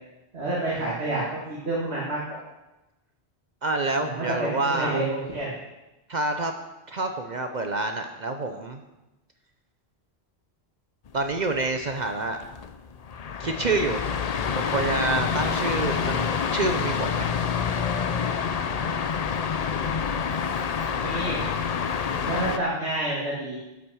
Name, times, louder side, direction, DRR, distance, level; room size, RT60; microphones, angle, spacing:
voice 1, 0.3-2.4 3.9-5.6 20.9-21.4 22.3-23.6, right 2 dB, 75° right, -6 dB, 2.3 m, -29 dB
voice 2, 3.6-5.0 6.1-6.5 6.9-8.8 11.1-12.4 13.4-14.0 14.6-17.4, right 3 dB, 45° right, 5 dB, 0.8 m, -27 dB
sound 1, 11.1-22.6, left 6 dB, 45° left, 0.6 m, -27 dB
12.0 x 6.0 x 6.3 m, 1.0 s
omnidirectional pair, 1.1 m